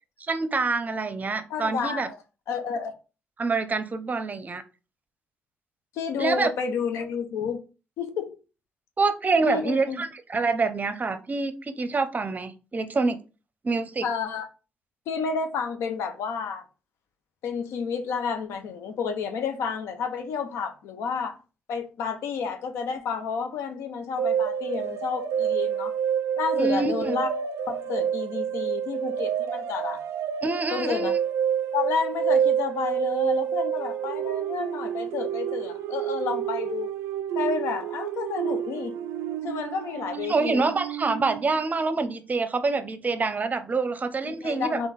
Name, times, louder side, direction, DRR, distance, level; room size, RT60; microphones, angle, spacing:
voice 1, 0.2-2.1 3.4-4.6 6.2-6.5 9.0-13.2 13.6-14.1 26.6-27.2 30.4-31.2 40.3-44.8, right 4 dB, 40° right, 0.7 m, -26 dB
voice 2, 1.5-2.2 2.5-3.0 5.9-7.6 8.0-8.4 9.4-10.0 14.0-14.5 15.1-16.6 17.4-21.3 21.7-25.9 26.4-27.3 27.7-30.0 30.7-31.1 31.7-36.9 37.3-38.9 39.4-40.7 44.2-44.9, left 6 dB, 85° left, 0.7 m, -30 dB
sound 1, 24.2-41.6, right 9 dB, 90° right, 0.3 m, -28 dB
3.5 x 3.0 x 4.1 m
supercardioid pair, 60°, 4 cm